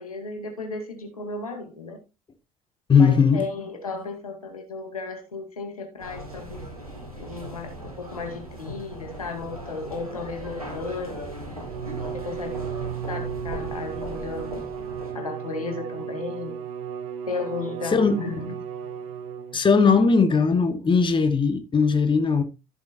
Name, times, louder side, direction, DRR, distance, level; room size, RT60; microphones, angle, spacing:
voice 1, 0.0-2.0 3.0-6.7 7.2-11.3 12.1-12.5 13.1-14.7 15.1-16.6 17.3-18.6, left 4 dB, 85° left, 2.1 m, -34 dB
voice 2, 2.9-3.4 17.9-18.1 19.5-22.4, left 5 dB, 25° left, 1.6 m, -19 dB
sound 1, 6.0-15.1, right 1 dB, 90° right, 2.2 m, -38 dB
Bowed string instrument, 11.5-19.8, right 8 dB, 70° right, 1.2 m, -34 dB
13.5 x 8.0 x 2.7 m
figure-of-eight pair, 60°, 18 cm